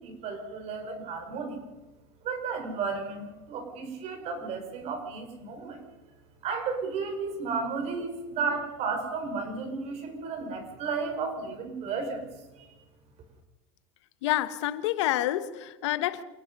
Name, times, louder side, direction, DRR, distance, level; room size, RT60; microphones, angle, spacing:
voice 1, 0.0-1.7 2.2-5.8 6.4-12.3 12.6-12.7, right 4 dB, 45° right, 5.2 m, -33 dB
voice 2, 14.2-16.2, left 14 dB, 80° left, 1.2 m, -28 dB
28.0 x 17.5 x 5.5 m
supercardioid pair, 130°, 15 cm